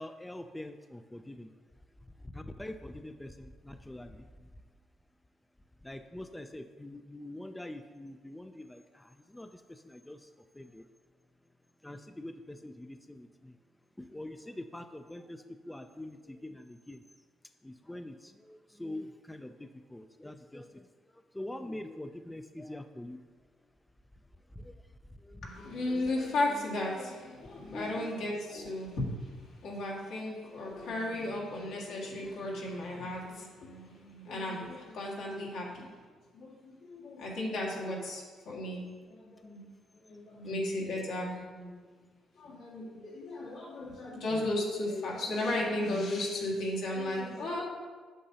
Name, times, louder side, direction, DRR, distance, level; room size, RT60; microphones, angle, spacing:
voice 1, 0.0-1.5 2.0-4.5 5.8-10.9 11.8-13.6 14.0-17.0 17.6-23.3 24.5-25.5 27.7-28.1 28.5-29.0 44.3-44.5, left 1 dB, 10° left, 8 dB, 0.3 m, -45 dB
voice 2, 25.4-36.0 36.3-39.7 39.9-41.8 42.4-47.6, left 1 dB, 85° left, -4 dB, 1.8 m, -35 dB
8.5 x 6.7 x 2.8 m, 1.5 s
cardioid pair, 90°, 0 cm